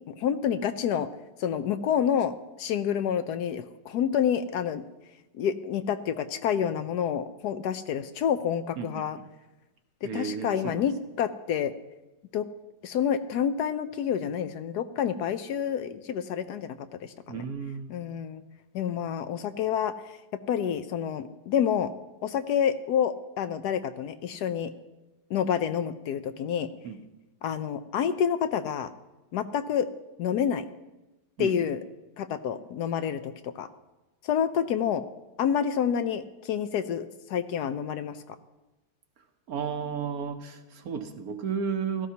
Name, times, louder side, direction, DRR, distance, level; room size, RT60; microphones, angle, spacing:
voice 1, 0.1-1.1 1.4-2.3 2.6-4.8 5.4-9.2 10.0-11.7 12.3-12.4 12.8-17.4 17.9-18.4 18.7-19.9 20.5-21.9 22.2-24.7 25.3-26.7 27.4-28.9 29.3-29.9 30.2-30.7 31.4-31.8 32.2-33.7 34.2-35.0 35.4-38.2, left 8 dB, 75° left, 11 dB, 1.0 m, -28 dB
voice 2, 8.8-9.3 10.0-10.9 17.3-18.0 26.8-27.0 31.4-31.7 39.5-42.1, right 6 dB, 60° right, 7 dB, 1.2 m, -33 dB
16.5 x 13.5 x 2.8 m, 1.0 s
omnidirectional pair, 1.9 m